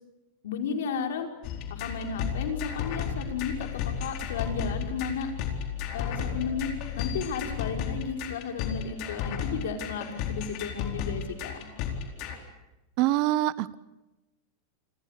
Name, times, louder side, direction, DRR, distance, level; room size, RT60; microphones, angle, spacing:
voice 1, 0.4-1.3 1.7-5.3 5.9-11.7, left 6 dB, 90° left, 3 dB, 5.1 m, -34 dB
sound 1, 1.4-12.4, left 7 dB, 40° left, 4.2 m, -33 dB
voice 2, 13.0-13.7, right 15 dB, 40° right, 18 dB, 0.9 m, -25 dB
29.0 x 25.5 x 6.7 m, 1.0 s
supercardioid pair, 170°, 0 cm